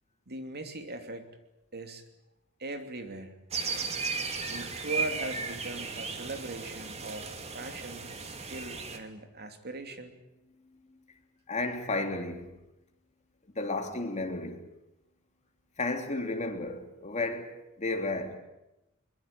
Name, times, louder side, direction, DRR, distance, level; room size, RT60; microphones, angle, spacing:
voice 1, 0.3-1.3 1.7-2.0 2.6-3.3 4.5-10.1, right 2 dB, 50° right, 2.9 m, -40 dB
sound 1, 3.5-9.0, right 4 dB, 30° right, 2.7 m, -35 dB
voice 2, 11.5-12.5 13.5-14.6 15.8-18.4, left 2 dB, 35° left, 3.3 m, -33 dB
23.0 x 22.0 x 9.0 m
head